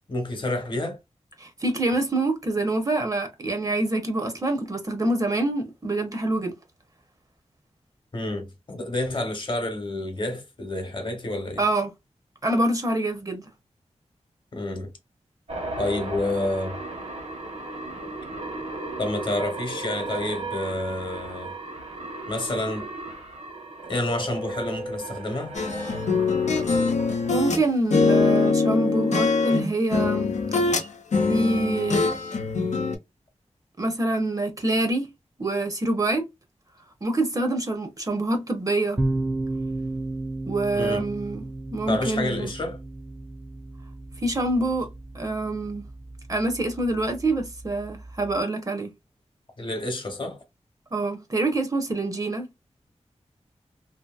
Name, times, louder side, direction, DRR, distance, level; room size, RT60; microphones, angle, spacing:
voice 1, 0.1-1.0 8.1-11.6 14.5-14.9 15.8-16.8 19.0-21.5 22.3-22.9 23.9-25.6 40.8-41.0 41.9-42.8 49.6-50.4, left 1 dB, 45° left, 0.9 m, -29 dB
voice 2, 1.4-6.5 11.6-11.9 12.4-13.4 27.3-30.3 31.3-32.1 33.8-35.1 35.4-36.2 37.0-39.0 40.5-42.5 44.2-44.9 45.1-45.8 46.3-48.9 50.9-52.5, right 2 dB, 30° right, 0.7 m, -26 dB
sound 1, 15.5-29.4, right 2 dB, 65° right, 1.2 m, -36 dB
sound 2, 25.5-27.6 27.9-30.9 31.1-33.0, left 4 dB, 85° left, 0.6 m, -23 dB
sound 3, 39.0-48.4, right 2 dB, 15° right, 0.4 m, -34 dB
2.8 x 2.6 x 2.3 m
wide cardioid pair, 110°, 12 cm